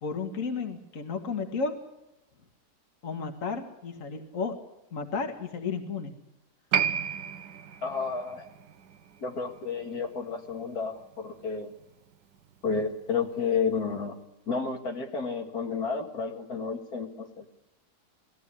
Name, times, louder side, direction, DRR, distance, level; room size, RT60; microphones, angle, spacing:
voice 1, 0.0-1.7 3.0-4.6 4.9-6.1 12.6-12.9, left 5 dB, 55° left, 5 dB, 2.3 m, -33 dB
Piano, 6.7-13.7 13.9-14.0, right 8 dB, 90° right, 1.6 m, -35 dB
voice 2, 7.8-8.5 9.2-11.7 12.6-14.2 14.5-17.5, left 5 dB, 70° left, 2 dB, 2.4 m, -31 dB
20.0 x 15.5 x 9.9 m, 0.87 s
omnidirectional pair, 1.7 m